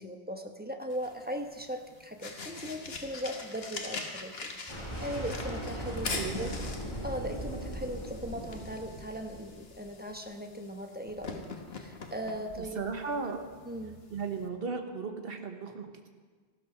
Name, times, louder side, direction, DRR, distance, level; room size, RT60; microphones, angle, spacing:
voice 1, 0.0-6.5 7.0-11.5 11.7-12.8 13.2-13.3 13.6-14.0, equal, 10° right, 4 dB, 1.0 m, -39 dB
sound 1, 0.9-14.5, left 3 dB, 70° left, 1.5 m, -43 dB
sound 2, 4.7-9.8, equal, 25° left, 5.3 m, -39 dB
voice 2, 6.1-6.6 12.6-13.5 14.1-16.1, right 5 dB, 60° right, 5 dB, 1.4 m, -36 dB
15.0 x 12.5 x 5.0 m, 1.5 s
omnidirectional pair, 1.1 m